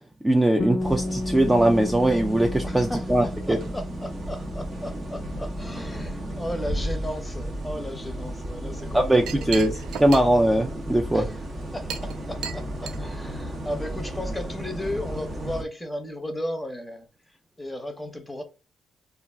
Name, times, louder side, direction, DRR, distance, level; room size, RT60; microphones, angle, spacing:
voice 1, 0.2-3.6 8.9-9.7 10.0-11.2, right 1 dB, 10° right, 0.3 m, -21 dB
Bass guitar, 0.6-6.8, left 1 dB, 55° left, 0.5 m, -34 dB
sound 1, 0.8-15.6, right 1 dB, 45° right, 0.7 m, -34 dB
voice 2, 2.6-9.6 11.1-11.4 11.7-17.1 17.6-18.4, left 1 dB, 10° left, 0.8 m, -35 dB
Chink clink, 8.8-14.1, right 7 dB, 85° right, 0.3 m, -39 dB
2.4 x 2.1 x 3.3 m
cardioid pair, 90°, 0 cm